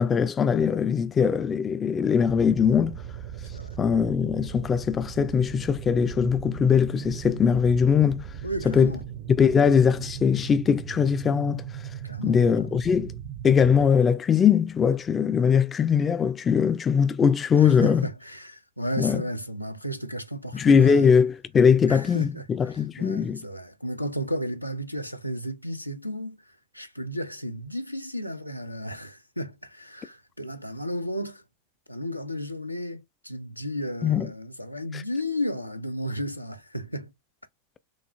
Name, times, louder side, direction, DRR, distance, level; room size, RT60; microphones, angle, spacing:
voice 1, 0.0-3.0 3.8-8.3 8.7-8.9 9.3-11.7 12.2-13.1 13.4-18.1 19.0-19.2 20.5-23.4 34.0-34.3 34.9-35.0, left 7 dB, 20° left, 0.4 m, -21 dB
sound 1, 2.2-13.9, right 9 dB, 45° right, 0.6 m, -38 dB
voice 2, 8.4-9.0 9.4-9.6 12.0-12.5 17.6-21.1 21.8-31.4 31.9-37.1, equal, 90° left, 0.6 m, -33 dB
6.4 x 2.4 x 2.3 m
figure-of-eight pair, 90°, 0 cm